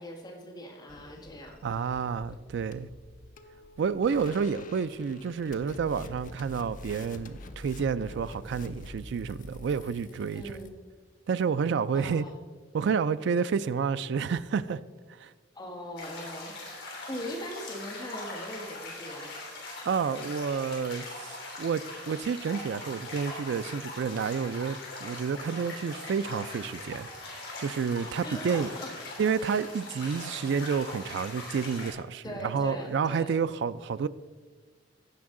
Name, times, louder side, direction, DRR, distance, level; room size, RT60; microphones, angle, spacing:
voice 1, 0.0-1.6 10.3-10.7 11.9-12.3 15.5-19.3 28.2-28.9 32.2-33.4, equal, 20° left, 1.5 m, -40 dB
sound 1, 0.9-10.7, left 2 dB, 45° left, 0.6 m, -47 dB
voice 2, 1.6-2.9 3.8-10.5 11.3-12.2 12.7-14.8 15.2-15.3 19.9-28.7 29.2-34.1, right 6 dB, 60° right, 0.3 m, -30 dB
sound 2, 16.0-31.9, left 2 dB, 60° left, 3.2 m, -41 dB
15.5 x 5.3 x 3.7 m
head